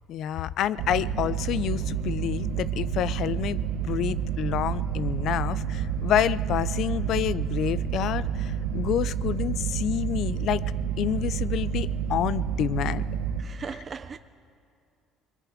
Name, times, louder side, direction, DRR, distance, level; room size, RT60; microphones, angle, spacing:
voice 1, 0.1-10.6 11.0-13.0, left 11 dB, 60° left, 0.5 m, -28 dB
sound 1, 0.8-13.4, right 8 dB, 90° right, 1.0 m, -29 dB
voice 2, 13.4-14.2, right 6 dB, 30° right, 0.5 m, -37 dB
26.0 x 22.5 x 5.0 m
cardioid pair, 135°, 0 cm